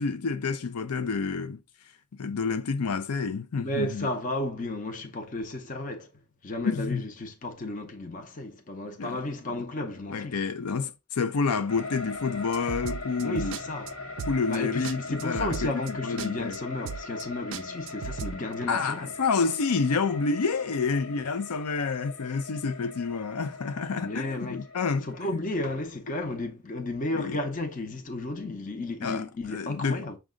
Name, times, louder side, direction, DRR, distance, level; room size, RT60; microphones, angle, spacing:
voice 1, 0.0-1.6 2.1-4.1 6.6-7.0 9.0-9.2 10.1-13.6 14.3-16.6 18.7-25.1 27.1-27.4 29.0-29.2 29.5-30.1, left 4 dB, 90° left, 0.5 m, -29 dB
voice 2, 3.6-6.1 6.4-10.4 13.2-13.9 14.5-19.1 24.0-24.6 25.0-30.2, left 2 dB, 35° left, 0.6 m, -33 dB
sound 1, 11.7-25.8, left 3 dB, 65° left, 1.1 m, -40 dB
sound 2, 12.5-13.6 13.9-14.0 14.2-14.6 14.8-14.9 15.2-15.9 16.2-16.3 16.5-16.6 16.8-17.2 17.5-18.4, right 7 dB, 55° right, 0.3 m, -35 dB
6.3 x 2.4 x 3.6 m
head